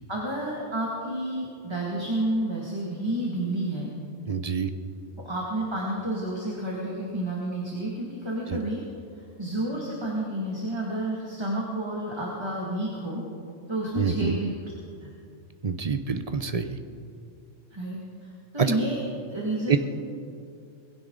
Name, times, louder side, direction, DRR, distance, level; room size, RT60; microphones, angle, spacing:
voice 1, 0.1-3.9 5.2-8.8 9.2-13.2 13.7-14.5 15.0-15.1 17.7-19.0 19.3-19.8, right 1 dB, 20° right, -4 dB, 2.1 m, -30 dB
voice 2, 4.3-4.7 8.5-8.6 13.9-14.3 15.6-16.8 18.6-18.8 19.7-19.8, right 6 dB, 35° right, 8 dB, 0.6 m, -26 dB
20.5 x 16.0 x 3.9 m, 2.5 s
omnidirectional pair, 1.4 m